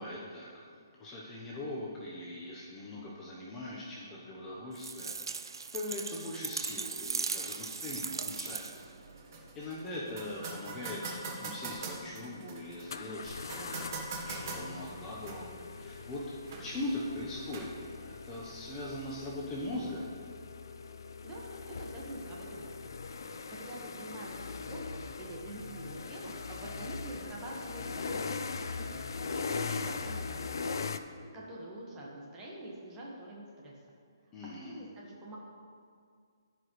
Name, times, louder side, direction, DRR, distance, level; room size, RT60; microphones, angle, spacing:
voice 1, 0.0-8.8 9.5-13.9 14.2-17.7 18.0-20.1 34.3-34.8, left 1 dB, 15° left, -5 dB, 0.9 m, -41 dB
sound 1, 4.8-9.0, right 4 dB, 90° right, 0.4 m, -38 dB
sound 2, 8.4-18.4, right 3 dB, 45° right, 1.3 m, -44 dB
sound 3, 11.7-11.8 12.9-31.0, left 4 dB, 70° left, 0.4 m, -41 dB
voice 2, 21.2-22.7 23.1-29.0 29.3-30.8 31.2-33.8 34.6-35.4, right 1 dB, 15° right, -4 dB, 1.5 m, -45 dB
14.5 x 5.1 x 3.2 m, 2.1 s
hypercardioid pair, 160°, 2 cm